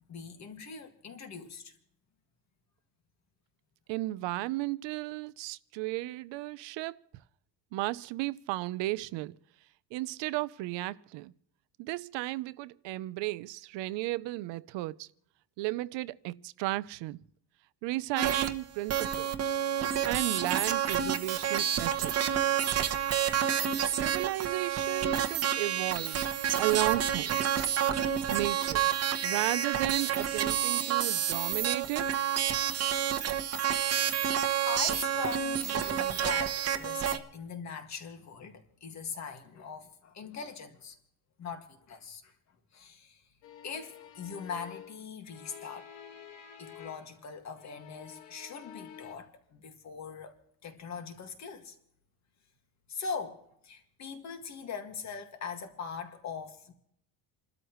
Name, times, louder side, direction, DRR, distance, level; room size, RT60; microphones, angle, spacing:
voice 1, 0.1-1.7 34.6-41.0 41.4-42.3 42.7-43.2 43.6-45.9 46.6-50.4 50.6-51.8 52.9-56.7, left 5 dB, 40° left, 2.1 m, -41 dB
voice 2, 3.9-7.0 7.7-9.3 9.9-11.3 11.8-15.1 15.6-17.2 17.8-19.6 20.0-22.3 23.8-26.2 26.5-27.4 28.3-28.9 29.2-32.1, right 18 dB, 75° right, 0.8 m, -34 dB
sound 1, 18.2-18.5 18.9-37.2, right 9 dB, 35° right, 1.1 m, -29 dB
sound 2, 43.4-47.2 47.5-49.1, left 9 dB, 85° left, 1.9 m, -50 dB
29.0 x 13.0 x 3.1 m
cardioid pair, 155°, 44 cm